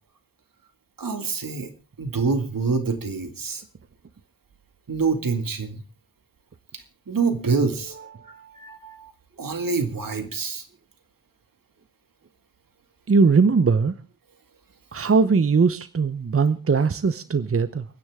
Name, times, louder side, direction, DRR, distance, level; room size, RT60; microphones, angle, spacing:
voice 1, 1.0-1.7 2.0-3.6 4.9-5.8 6.7-7.9 8.5-9.1 9.4-10.6, right 4 dB, 70° right, 8 dB, 2.1 m, -26 dB
voice 2, 8.2-8.5 13.1-13.9 14.9-17.9, right 4 dB, 40° right, 13 dB, 0.8 m, -20 dB
29.5 x 9.9 x 3.6 m, 0.33 s
wide cardioid pair, 90°, 35 cm